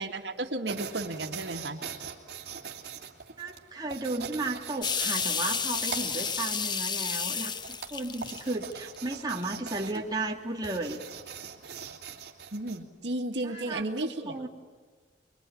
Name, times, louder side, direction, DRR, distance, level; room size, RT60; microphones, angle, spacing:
voice 1, 0.0-1.8 12.5-14.5, right 2 dB, 80° right, 4 dB, 2.1 m, -33 dB
sound 1, 0.7-12.8, right 6 dB, 60° right, 3.0 m, -43 dB
voice 2, 3.4-7.5 7.9-11.0 13.4-14.5, right 2 dB, 25° right, 0 dB, 2.3 m, -34 dB
sound 2, 4.8-9.0 9.4-9.7, left 6 dB, 25° left, 0.8 m, -31 dB
24.0 x 24.0 x 10.0 m, 1.5 s
head